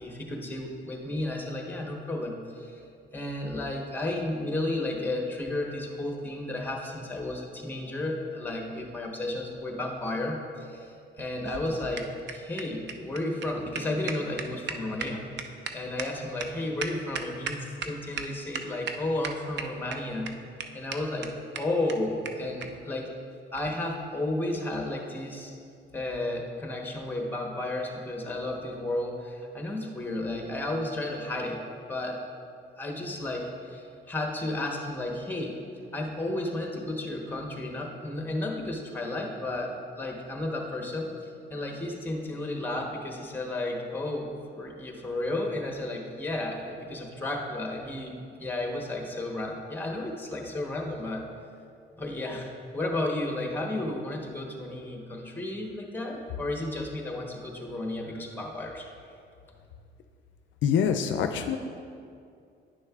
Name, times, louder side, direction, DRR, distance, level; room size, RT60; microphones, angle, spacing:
voice 1, 0.0-2.8 3.1-10.9 11.1-15.2 15.7-20.3 20.7-23.1 23.5-25.5 25.9-31.6 31.9-32.2 32.8-35.6 35.9-41.1 41.5-51.3 51.9-58.9, left 1 dB, 10° left, 1 dB, 1.0 m, -33 dB
sound 1, 11.2-17.9 18.2-18.3 18.5-18.9 19.2-19.9 20.3-20.4 20.6-20.7 20.9-21.0 21.2-21.3 21.5-21.6 21.9-22.0 22.2-22.3 22.6-22.7 23.5-23.7, right 6 dB, 60° right, 0.5 m, -35 dB
voice 2, 60.6-61.6, left 7 dB, 70° left, 6 dB, 0.4 m, -25 dB
9.7 x 6.3 x 2.4 m, 2.4 s
cardioid pair, 90°, 20 cm